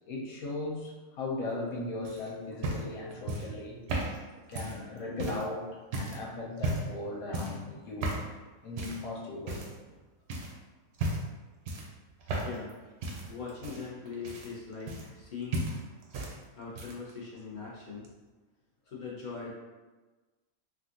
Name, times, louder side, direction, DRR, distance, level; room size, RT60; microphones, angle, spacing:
voice 1, 0.1-3.8 4.5-8.2 8.6-9.7, left 2 dB, 80° left, -3 dB, 1.1 m, -37 dB
sound 1, 2.0-5.5 5.9-6.2 6.6-7.0 7.3-7.6 8.0-8.3 8.8-9.1 9.5-10.0 10.3-10.5 10.9-11.4 11.7-12.7 13.0-15.3 15.5-16.3 16.6-17.1 18.0-18.1, right 2 dB, 65° right, 0.7 m, -35 dB
voice 2, 13.3-15.7 16.5-18.0 18.9-19.5, left 5 dB, 50° left, -6 dB, 0.6 m, -41 dB
3.5 x 2.4 x 2.5 m, 1.3 s
omnidirectional pair, 1.5 m